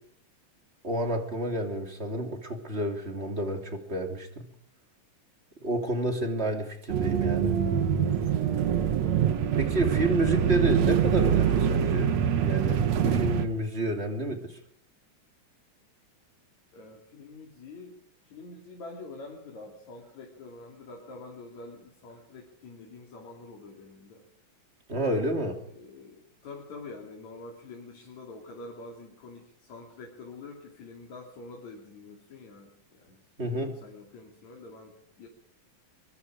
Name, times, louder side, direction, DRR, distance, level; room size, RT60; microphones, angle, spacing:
voice 1, 0.8-4.4 5.6-7.5 9.5-12.1 12.4-14.5 24.9-25.6 33.4-33.7, right 1 dB, 20° right, 4 dB, 2.9 m, -30 dB
sound 1, 6.9-13.5, right 8 dB, 70° right, 2.5 m, -25 dB
voice 2, 16.7-18.0 18.3-24.3 25.7-35.3, left 3 dB, 70° left, 0 dB, 4.2 m, -46 dB
23.5 x 23.5 x 5.0 m, 0.65 s
omnidirectional pair, 3.3 m